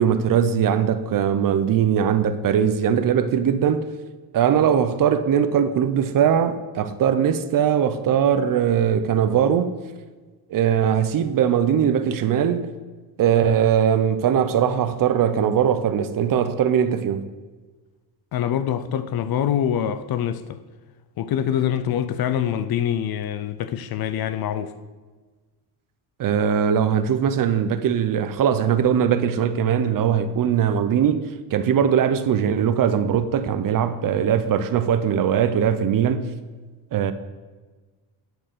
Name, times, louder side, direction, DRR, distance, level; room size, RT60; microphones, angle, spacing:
voice 1, 0.0-3.9 4.3-9.8 10.5-12.7 13.2-17.3 26.2-36.3 36.9-37.1, right 8 dB, 50° right, 0.6 m, -20 dB
voice 2, 18.3-20.6 21.2-24.7, left 9 dB, 55° left, 0.6 m, -25 dB
11.0 x 4.7 x 6.7 m
cardioid pair, 150°, 44 cm